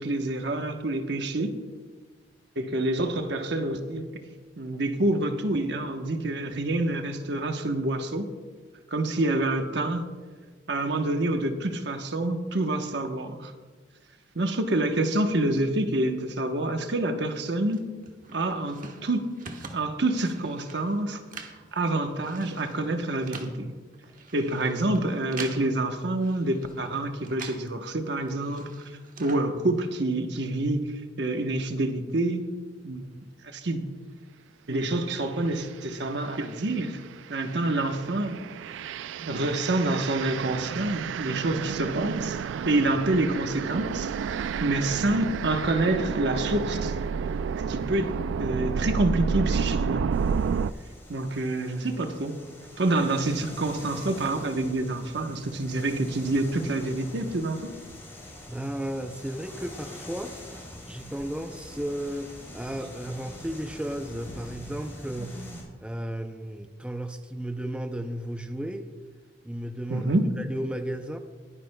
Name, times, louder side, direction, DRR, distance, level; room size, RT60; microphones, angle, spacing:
voice 1, 0.0-1.6 2.6-4.1 4.6-8.3 8.9-10.1 10.7-13.5 14.3-17.9 18.3-19.3 19.7-21.2 21.7-23.7 24.3-28.7 29.2-32.5 32.8-33.1 33.4-33.9 34.7-37.0 37.3-38.4 39.2-42.4 42.6-44.1 44.6-46.9 47.7-48.1 48.4-50.1 51.1-52.4 52.8-57.7 65.2-65.6 69.9-70.4, right 2 dB, 65° right, 6 dB, 1.0 m, -27 dB
sound 1, 17.7-27.8 28.0-30.1, right 4 dB, 45° right, 1.1 m, -45 dB
sound 2, 35.5-35.7 36.3-50.7, right 6 dB, 80° right, 0.3 m, -31 dB
sound 3, 50.1-65.6, left 1 dB, 15° left, 3.7 m, -45 dB
voice 2, 58.5-60.3 60.9-65.5 65.8-68.9 69.4-71.2, right 1 dB, 5° right, 6 dB, 0.5 m, -34 dB
21.0 x 10.0 x 2.2 m, 1.4 s
head